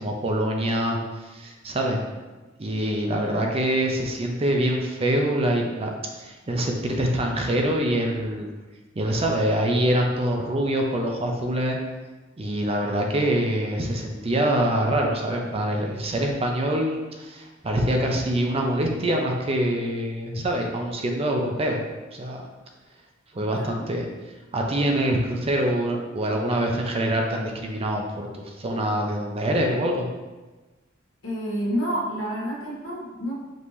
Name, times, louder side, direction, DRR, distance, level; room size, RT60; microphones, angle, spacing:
voice 1, 0.0-2.0 2.6-8.5 8.9-11.8 12.4-21.8 22.1-22.4 23.3-24.1 24.5-30.1, right 1 dB, 30° right, 1 dB, 0.5 m, -25 dB
voice 2, 3.1-3.5 23.4-23.8 31.2-33.3, equal, 75° left, -5 dB, 1.2 m, -29 dB
5.1 x 2.8 x 3.1 m, 1.2 s
head